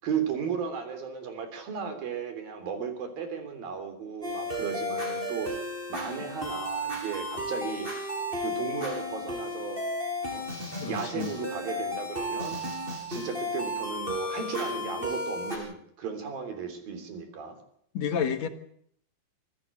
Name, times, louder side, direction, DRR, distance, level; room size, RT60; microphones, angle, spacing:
voice 1, 0.0-5.5 5.9-7.9 8.4-9.9 10.3-10.5 10.9-12.6 13.1-17.6, right 6 dB, 85° right, 8 dB, 5.3 m, -35 dB
sound 1, 4.2-15.6, left 1 dB, 15° right, 6.0 m, -34 dB
voice 2, 10.7-11.3 17.9-18.5, left 7 dB, 60° left, 9 dB, 2.3 m, -30 dB
25.5 x 15.0 x 7.6 m, 0.68 s
omnidirectional pair, 4.0 m